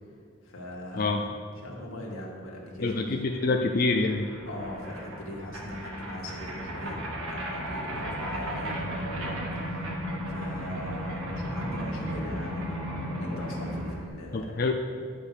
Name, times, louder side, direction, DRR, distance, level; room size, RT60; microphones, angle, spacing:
voice 1, 0.4-3.2 4.5-9.9 10.3-12.8 13.2-14.6, left 1 dB, 85° left, -1 dB, 1.9 m, -40 dB
voice 2, 2.8-4.3 14.3-14.7, left 3 dB, 45° left, 3 dB, 0.4 m, -26 dB
sound 1, 2.9-3.0 3.2-14.1, equal, 85° right, 1.8 m, -35 dB
11.0 x 5.2 x 6.7 m, 2.2 s
head